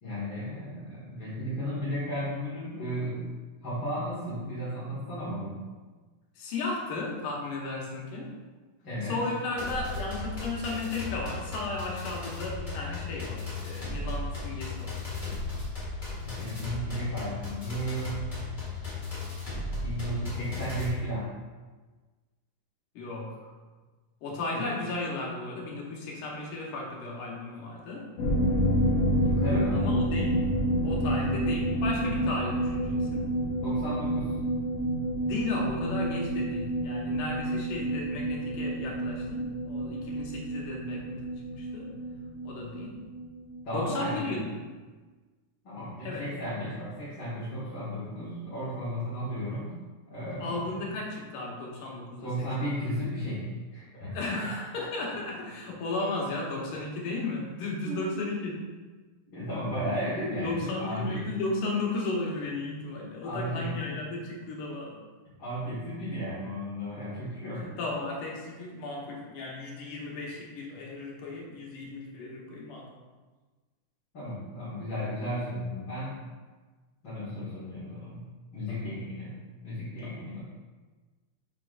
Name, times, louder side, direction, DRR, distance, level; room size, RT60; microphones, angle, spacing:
voice 1, 0.0-3.3 3.6-5.7 8.8-9.2 16.2-18.3 19.8-21.3 24.5-24.6 29.2-29.8 33.6-34.4 43.6-44.4 45.6-49.8 50.1-51.0 52.2-54.5 57.9-58.3 59.3-61.2 63.2-64.0 65.4-67.7 74.1-76.2 77.0-78.3 78.5-80.4, equal, 40° left, -11 dB, 2.4 m, -34 dB
voice 2, 6.4-8.4 9.1-15.1 23.0-23.5 24.2-28.1 29.7-30.4 30.8-33.3 35.2-41.2 41.5-42.0 42.4-43.0 43.7-44.6 46.0-46.2 50.4-52.3 52.6-52.7 54.1-58.6 60.4-65.0 67.8-72.9 78.7-79.0 80.0-80.3, left 2 dB, 85° left, -2 dB, 2.8 m, -35 dB
sound 1, 9.6-20.9, left 3 dB, 20° left, 1.3 m, -36 dB
sound 2, 28.2-43.6 43.8-43.9 44.2-44.3, right 1 dB, 60° left, 2.2 m, -29 dB
7.2 x 5.8 x 2.5 m, 1.3 s
omnidirectional pair, 3.6 m